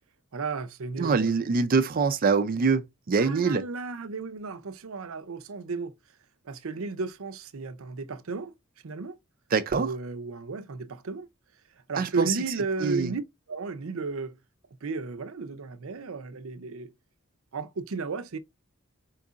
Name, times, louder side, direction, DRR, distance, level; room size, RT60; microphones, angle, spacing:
voice 1, 0.3-1.4 3.2-5.9 6.5-8.5 8.8-9.2 9.7-11.3 11.9-13.2 13.5-14.4 14.8-16.9 17.5-18.4, right 4 dB, 90° right, 0.6 m, -34 dB
voice 2, 1.0-2.8 3.1-3.6 9.5-9.9 12.0-12.4 12.8-13.1, right 5 dB, 45° right, 0.4 m, -24 dB
4.6 x 2.4 x 3.9 m
head